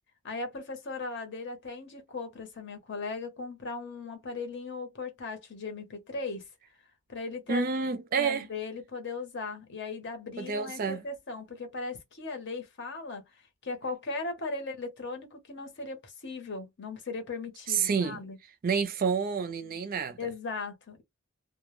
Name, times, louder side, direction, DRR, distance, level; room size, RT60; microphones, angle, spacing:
voice 1, 0.2-6.5 7.1-7.6 8.1-13.2 13.6-18.4 20.2-21.0, left 3 dB, 55° left, 0.9 m, -38 dB
voice 2, 7.5-8.5 10.4-11.0 17.7-18.2 18.6-20.2, right 5 dB, 40° right, 0.4 m, -29 dB
2.2 x 2.1 x 3.0 m
head